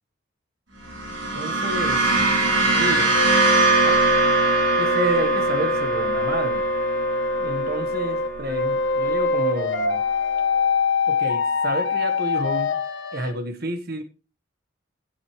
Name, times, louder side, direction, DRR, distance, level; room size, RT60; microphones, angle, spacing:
sound 1, 0.8-9.3, right 3 dB, 70° right, 4.9 m, -23 dB
voice 1, 1.3-2.2 2.8-3.1 3.8-4.0 4.8-6.6 7.4-10.0 11.1-12.8 13.1-14.0, right 1 dB, 50° right, 7 dB, 1.5 m, -29 dB
sound 2, 2.7-13.3, left 3 dB, 65° left, 1.6 m, -24 dB
17.0 x 7.9 x 3.3 m, 0.34 s
head